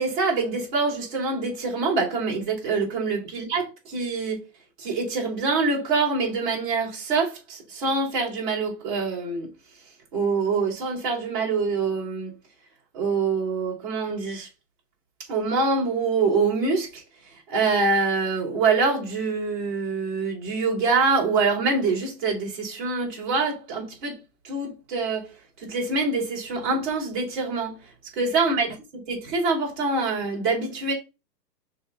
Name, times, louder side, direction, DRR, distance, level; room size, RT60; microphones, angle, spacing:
voice 1, 0.0-4.4 4.8-9.5 10.1-12.3 12.9-14.5 15.3-17.0 17.5-24.2 24.4-25.3 25.6-27.8 28.1-28.7 29.1-30.9, right 4 dB, 30° right, 3.5 m, -25 dB
5.5 x 4.3 x 5.6 m
hypercardioid pair, 175°, 50 cm